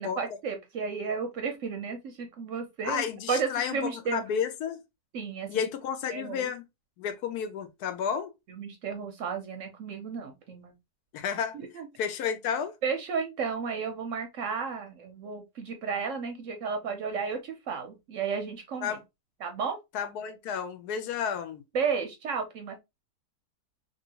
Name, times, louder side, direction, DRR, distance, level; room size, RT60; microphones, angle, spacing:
voice 1, 0.0-4.2 5.1-5.7 6.1-6.5 8.5-10.7 11.5-11.9 12.8-19.0 19.4-19.8 21.7-22.8, right 5 dB, 65° right, 0.8 m, -33 dB
voice 2, 2.8-3.8 4.1-4.8 5.5-6.6 7.0-8.3 11.1-11.6 12.0-12.7 18.8-19.0 19.9-21.6, left 7 dB, 75° left, 1.1 m, -31 dB
2.7 x 2.7 x 2.7 m
omnidirectional pair, 1.7 m